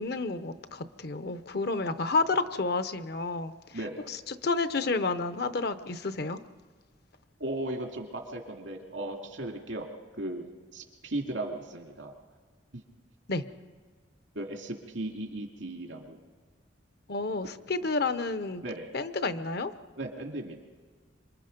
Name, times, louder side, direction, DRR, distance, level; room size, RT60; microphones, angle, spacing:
voice 1, 0.0-3.5 4.1-6.4 13.3-13.4 17.1-18.6 18.9-19.7, left 3 dB, 55° left, 11 dB, 0.8 m, -30 dB
voice 2, 3.7-4.1 7.4-9.9 10.2-10.4 10.7-12.1 12.7-12.8 14.3-16.2 18.6-18.9 20.0-20.6, right 1 dB, 85° right, 2 dB, 2.4 m, -36 dB
26.0 x 23.5 x 5.2 m, 1.5 s
head